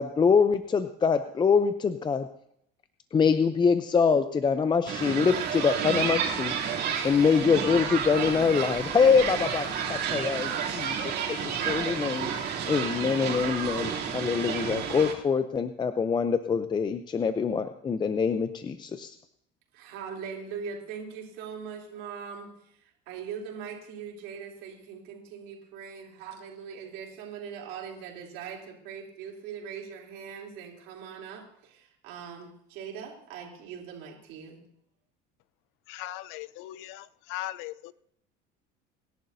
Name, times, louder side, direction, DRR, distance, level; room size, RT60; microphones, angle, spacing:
voice 1, 0.0-2.3 3.1-6.5 7.0-11.0 11.3-12.3 12.7-19.1, left 5 dB, 20° left, 9 dB, 0.6 m, -24 dB
sound 1, 4.9-15.1, right 7 dB, 55° right, 3.0 m, -31 dB
voice 2, 19.7-34.7, right 7 dB, 75° right, -2 dB, 3.4 m, -41 dB
voice 3, 35.9-37.9, left 15 dB, 75° left, 17 dB, 0.6 m, -38 dB
26.5 x 11.0 x 2.7 m, 0.73 s
cardioid pair, 120°, 20 cm